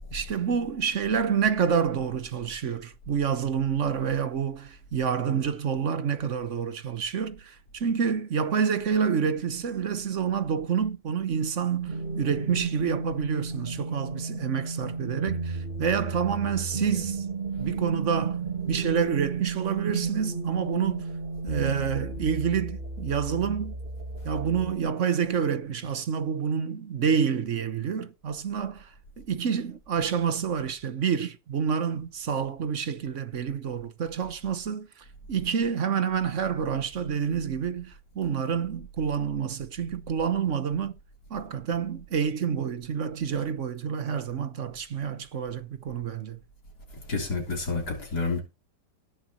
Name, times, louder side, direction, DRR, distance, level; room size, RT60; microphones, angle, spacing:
voice 1, 0.1-17.2 17.6-18.4 18.7-21.1 21.4-23.8 24.2-28.9 29.2-34.9 35.3-41.0 41.3-46.4, right 7 dB, 50° right, 1.3 m, -28 dB
sound 1, 11.9-24.7, right 4 dB, 35° right, 1.6 m, -33 dB
voice 2, 47.1-48.4, left 4 dB, 70° left, 4.1 m, -29 dB
19.5 x 6.8 x 3.1 m
omnidirectional pair, 1.8 m